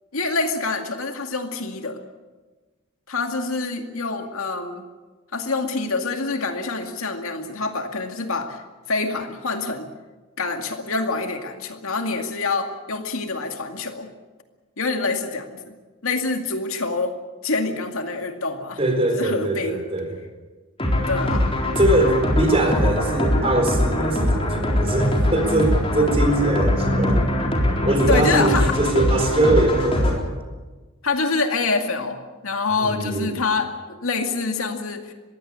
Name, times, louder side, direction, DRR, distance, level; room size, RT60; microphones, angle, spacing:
voice 1, 0.1-2.0 3.1-4.8 5.3-8.6 8.9-9.9 10.4-14.1 14.8-15.7 16.0-17.1 17.4-18.8 19.1-19.8 21.1-21.5 28.1-28.8 31.0-32.2 32.4-35.1, left 3 dB, 80° left, 5 dB, 2.2 m, -26 dB
voice 2, 18.8-20.1 21.8-27.3 27.8-30.4 32.8-33.4, right 2 dB, 30° right, 4 dB, 4.3 m, -22 dB
sound 1, 20.8-30.1, left 1 dB, 25° left, 4.0 m, -22 dB
22.0 x 16.0 x 8.9 m, 1.3 s
head